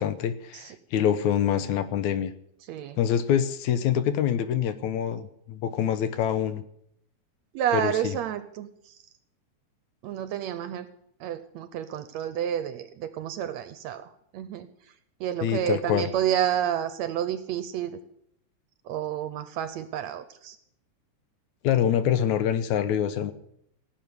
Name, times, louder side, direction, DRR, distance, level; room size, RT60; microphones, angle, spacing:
voice 1, 0.0-2.3 3.0-6.6 7.7-8.1 15.4-16.1 21.6-23.3, left 9 dB, 75° left, 12 dB, 2.1 m, -25 dB
voice 2, 2.7-3.0 7.5-9.0 10.0-10.9 11.2-14.9 15.2-18.0 18.8-20.6, right 10 dB, 75° right, 11 dB, 1.8 m, -30 dB
17.5 x 7.1 x 9.6 m, 0.73 s
omnidirectional pair, 3.6 m